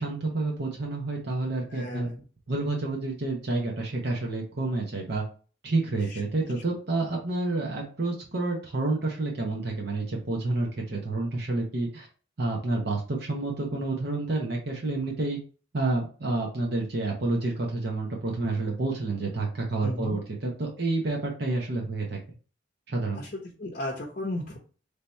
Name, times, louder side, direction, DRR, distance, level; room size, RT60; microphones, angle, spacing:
voice 1, 0.0-2.1 2.5-5.2 5.6-12.1 12.4-15.4 15.7-22.2 22.9-23.2, right 2 dB, 55° right, 0 dB, 0.8 m, -29 dB
voice 2, 1.7-2.3 6.1-6.4 19.8-20.2 23.1-24.6, left 1 dB, 40° left, -1 dB, 0.6 m, -35 dB
3.4 x 2.8 x 4.2 m, 0.38 s
head